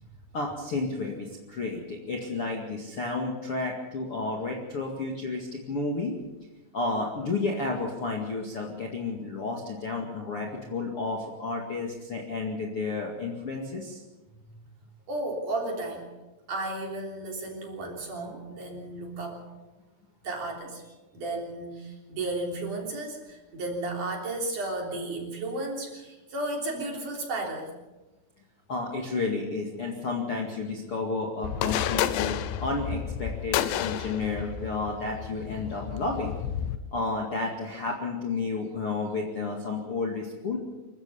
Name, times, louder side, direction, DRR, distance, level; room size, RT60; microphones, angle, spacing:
voice 1, 0.3-6.2 6.7-14.0 28.7-36.3 36.9-40.6, left 3 dB, 40° left, 0 dB, 2.2 m, -31 dB
voice 2, 15.1-16.1 16.5-19.4 20.2-20.8 21.1-27.7, right 2 dB, 45° right, 0 dB, 4.7 m, -33 dB
sound 1, 31.4-36.8, left 10 dB, 80° left, 2.9 m, -31 dB
26.0 x 15.0 x 6.9 m, 1.1 s
omnidirectional pair, 5.3 m